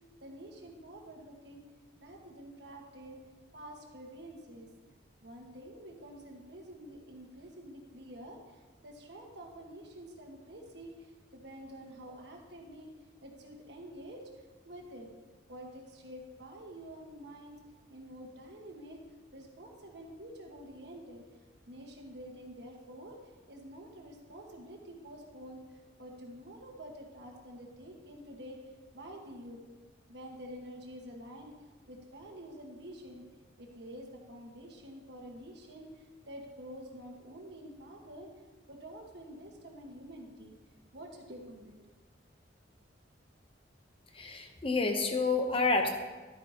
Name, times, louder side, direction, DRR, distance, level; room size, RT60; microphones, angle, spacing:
voice 1, 0.2-1.7 2.0-3.2 3.5-4.7 5.2-12.9 13.2-15.1 15.5-17.6 17.9-19.0 19.3-21.2 21.7-23.2 23.5-28.6 28.9-29.6 30.1-31.5 31.9-33.2 33.6-38.3 38.7-40.5 40.9-41.7, equal, 60° right, 1 dB, 1.5 m, -48 dB
voice 2, 44.1-45.9, left 3 dB, 30° left, 4 dB, 0.8 m, -29 dB
12.0 x 8.8 x 2.9 m, 1.3 s
head